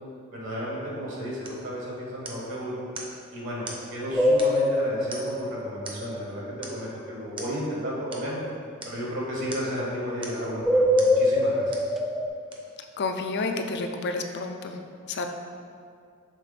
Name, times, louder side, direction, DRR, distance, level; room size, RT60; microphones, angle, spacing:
voice 1, 0.3-2.8 3.3-8.4 8.8-11.6, equal, 65° right, -4 dB, 1.5 m, -33 dB
sound 1, 1.4-1.7 2.3-2.5 3.0-3.2 3.7-3.9 4.4-4.7 5.1-5.5 5.9-6.2 6.6-6.9 7.4-7.6 8.1-8.3 8.8-9.0 9.5-9.8 10.2-10.5 11.0-11.2 11.7-11.9 12.5-12.6, right 2 dB, 25° right, 0.7 m, -41 dB
sound 2, 4.1-6.6 10.6-12.3, left 1 dB, ahead, 0.3 m, -23 dB
voice 2, 13.0-14.8 15.1-15.3, left 3 dB, 55° left, 5 dB, 0.5 m, -30 dB
6.4 x 3.7 x 5.1 m, 2.3 s
head